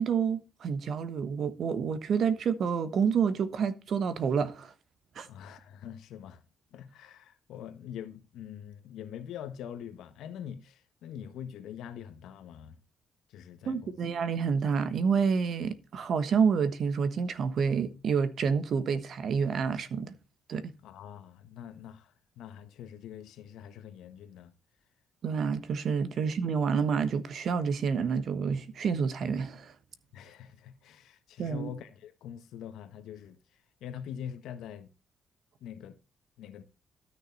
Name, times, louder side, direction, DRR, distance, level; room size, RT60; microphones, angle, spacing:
voice 1, 0.0-4.7 5.2-5.3 13.7-20.1 20.5-20.7 25.2-29.7 31.4-31.7, right 6 dB, 60° right, 1.2 m, -28 dB
voice 2, 5.2-6.4 6.7-12.8 13.3-14.0 20.8-24.5 30.1-34.9 35.6-36.0 36.4-36.6, left 9 dB, 85° left, 1.4 m, -44 dB
13.0 x 6.5 x 4.1 m
cardioid pair, 90°, 0 cm